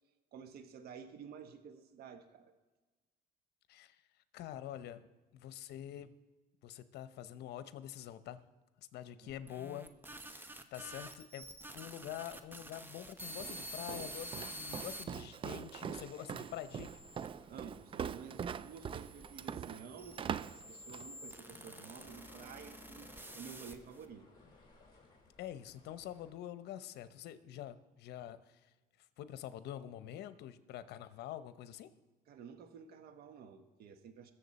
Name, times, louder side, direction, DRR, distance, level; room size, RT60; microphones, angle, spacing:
voice 1, 0.3-2.5 9.2-9.3 17.5-24.3 32.3-34.3, right 7 dB, 65° right, 9 dB, 1.1 m, -51 dB
voice 2, 4.3-5.0 5.3-6.1 6.6-8.4 8.9-9.9 10.3-11.5 11.7-16.9 25.4-28.6 29.2-31.9, left 11 dB, 75° left, 13 dB, 0.8 m, -46 dB
sound 1, 9.3-15.0 15.7-17.3 18.1-24.1, right 1 dB, 10° right, 0.9 m, -49 dB
Walk footsteps, 13.4-21.1, right 8 dB, 30° right, 0.4 m, -43 dB
sound 2, 16.4-26.3, left 3 dB, 25° left, 4.4 m, -61 dB
21.0 x 7.2 x 4.2 m, 1.2 s
cardioid pair, 110°, 17 cm